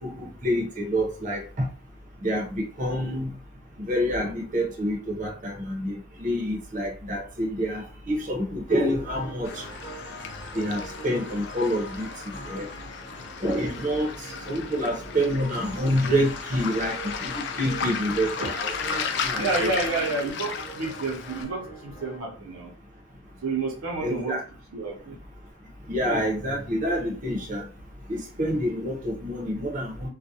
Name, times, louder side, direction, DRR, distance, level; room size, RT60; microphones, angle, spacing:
voice 1, 0.0-1.7 2.2-3.3 3.9-9.6 10.5-12.7 13.4-14.1 14.5-19.7 24.0-24.4 25.9-27.7 28.1-30.1, equal, 40° right, 0.6 m, -27 dB
sound 1, 8.7-22.2, right 1 dB, 20° left, 0.9 m, -42 dB
Waves surf, 9.4-21.4, left 6 dB, 55° left, 0.3 m, -35 dB
voice 2, 19.4-22.7 23.4-24.4 24.7-25.2, right 3 dB, 85° right, 0.6 m, -29 dB
2.3 x 2.1 x 2.7 m
head